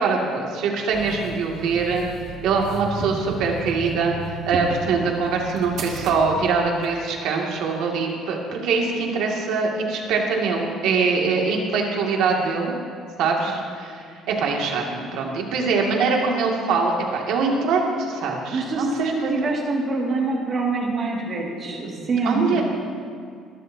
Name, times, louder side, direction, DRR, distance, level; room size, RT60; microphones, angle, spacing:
voice 1, 0.0-2.0 2.4-4.2 4.5-12.7 13.2-14.0 14.3-19.5 21.8-22.6, right 4 dB, 75° right, -1 dB, 2.3 m, -23 dB
sound 1, 0.9-7.0, right 2 dB, 55° right, 1.6 m, -34 dB
voice 2, 18.5-22.6, right 3 dB, 35° right, -1 dB, 2.2 m, -25 dB
21.0 x 13.0 x 2.8 m, 2.3 s
cardioid pair, 155°, 0 cm